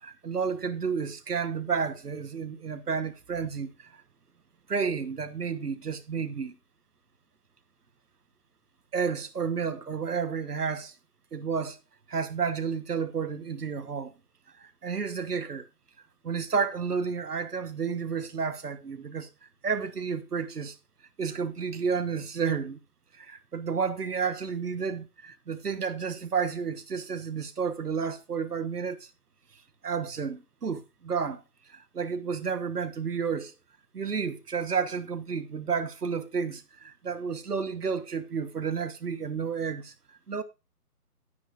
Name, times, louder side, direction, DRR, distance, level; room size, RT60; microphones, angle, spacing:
voice 1, 0.0-4.0 4.7-6.5 8.9-11.0 11.3-11.8 12.1-14.1 14.6-15.6 16.2-19.3 19.6-20.7 21.2-22.8 23.1-29.1 29.8-33.5 33.9-40.4, right 6 dB, 75° right, 1.2 m, -31 dB
11.0 x 9.7 x 2.5 m
figure-of-eight pair, 155°, 47 cm